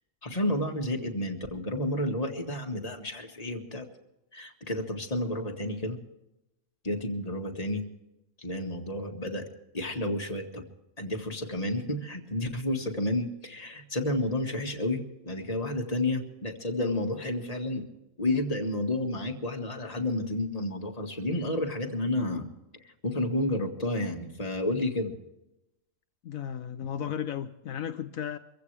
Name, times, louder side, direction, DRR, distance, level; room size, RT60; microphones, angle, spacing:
voice 1, 0.2-3.9 4.3-6.0 6.8-7.8 8.4-9.5 9.7-10.6 11.0-17.8 18.2-22.5 23.0-25.2, left 1 dB, 25° left, 1.9 m, -31 dB
voice 2, 26.2-28.4, left 9 dB, 75° left, 1.2 m, -34 dB
24.5 x 15.5 x 3.4 m
omnidirectional pair, 1.5 m